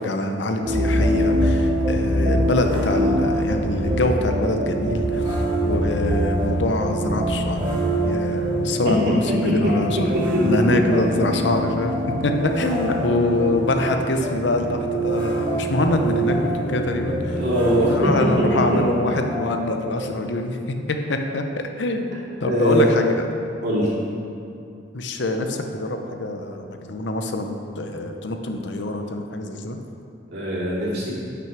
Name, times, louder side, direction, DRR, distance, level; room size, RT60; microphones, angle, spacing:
voice 1, 0.0-10.1 10.4-11.9 12.2-17.4 17.9-23.1 23.7-23.8 24.9-29.8, left 2 dB, 70° left, 5 dB, 0.8 m, -25 dB
sound 1, 0.6-20.2, right 1 dB, 25° right, 2.1 m, -24 dB
voice 2, 17.2-18.1 22.4-22.9 23.6-23.9 30.3-31.1, equal, 60° right, -6 dB, 2.6 m, -21 dB
9.2 x 6.0 x 6.0 m, 2.5 s
head